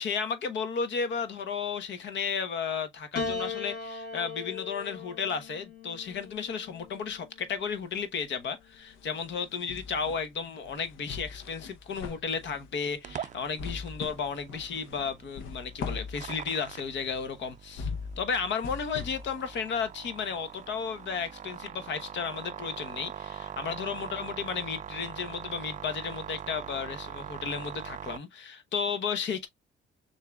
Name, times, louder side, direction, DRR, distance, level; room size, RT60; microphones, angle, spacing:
voice 1, 0.0-17.9 18.2-29.5, left 6 dB, 65° left, 1.0 m, -33 dB
Piano, 3.2-7.6 8.7-9.4, left 4 dB, 50° left, 1.7 m, -39 dB
sound 1, 6.1-7.2 7.5-21.3 21.7-21.8, left 5 dB, 90° left, 0.8 m, -42 dB
sound 2, 13.0-28.2, right 8 dB, 40° right, 0.4 m, -43 dB
6.4 x 2.7 x 2.2 m
cardioid pair, 90°, 20 cm